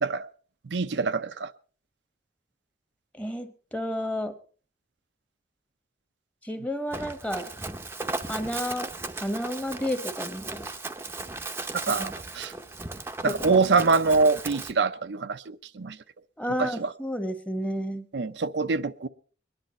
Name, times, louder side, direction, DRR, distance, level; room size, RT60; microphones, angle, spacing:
voice 1, 0.7-1.5 11.7-12.5 13.2-16.0 16.6-16.9 18.1-19.1, right 4 dB, 75° right, 0.6 m, -25 dB
voice 2, 3.2-4.3 6.4-7.5 8.3-8.9 9.2-10.7 11.9-12.1 13.2-13.6 16.4-18.1, equal, 10° left, 1.2 m, -31 dB
Run, 6.9-14.7, right 3 dB, 15° right, 0.7 m, -36 dB
22.0 x 10.5 x 4.2 m
head